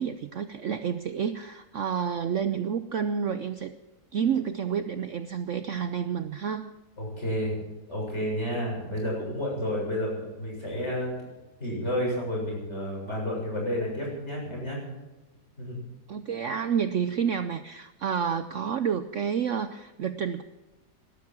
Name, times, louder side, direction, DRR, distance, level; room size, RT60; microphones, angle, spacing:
voice 1, 0.0-3.7 4.1-6.7 16.1-20.4, right 7 dB, 60° right, 10 dB, 0.9 m, -29 dB
voice 2, 7.0-7.6 7.9-11.1 11.6-14.8 15.6-15.8, equal, 40° left, -2 dB, 7.5 m, -30 dB
18.5 x 12.5 x 6.1 m, 1.1 s
omnidirectional pair, 1.8 m